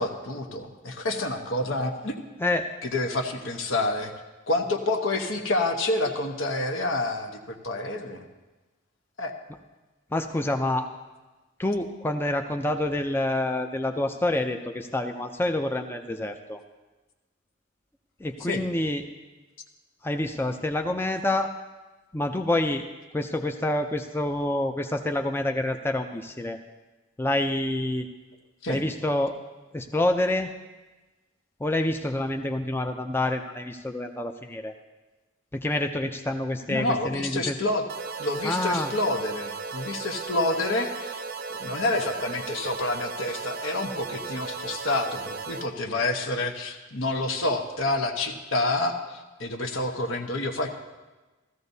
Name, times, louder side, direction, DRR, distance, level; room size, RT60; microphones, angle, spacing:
voice 1, 0.0-2.2 2.8-4.1 4.5-8.2 9.2-9.3 18.5-18.6 28.6-28.8 36.7-37.8 38.2-41.2 41.5-50.7, left 2 dB, 80° left, 4 dB, 1.1 m, -28 dB
voice 2, 10.1-10.9 11.6-16.6 18.2-19.0 20.0-21.5 22.1-22.8 23.1-26.6 27.2-28.1 28.7-29.4 29.7-30.5 31.6-34.7 35.5-37.5 38.4-38.9, left 1 dB, 10° left, 4 dB, 0.4 m, -27 dB
sound 1, 37.9-45.7, right 5 dB, 50° right, 0.6 m, -36 dB
16.0 x 14.0 x 2.7 m, 1.2 s
head